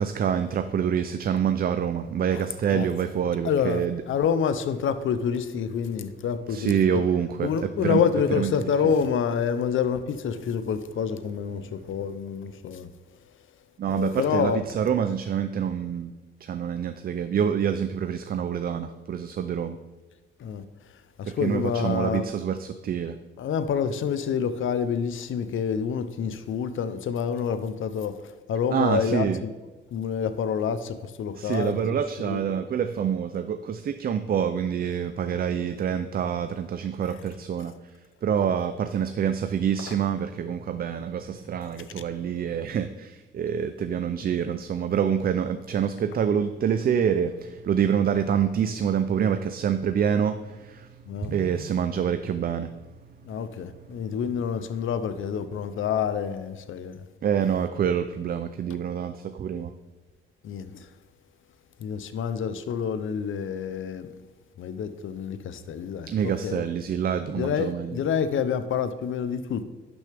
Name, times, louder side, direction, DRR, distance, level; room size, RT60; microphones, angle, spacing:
voice 1, 0.0-4.0 6.5-8.0 8.3-8.5 8.8-8.9 13.8-16.1 16.4-19.8 21.2-23.2 28.7-29.4 31.4-38.0 38.2-52.7 57.2-59.7 66.1-68.0, right 8 dB, 45° right, 0.4 m, -26 dB
voice 2, 3.4-7.0 7.4-12.9 13.9-14.6 20.4-20.6 21.2-22.3 23.4-29.3 29.9-31.8 32.2-32.4 51.1-51.3 53.2-57.0 60.4-60.9 61.8-64.1 64.6-66.7 67.4-69.6, left 7 dB, 70° left, 0.7 m, -27 dB
11.5 x 6.3 x 3.4 m
cardioid pair, 110°, 21 cm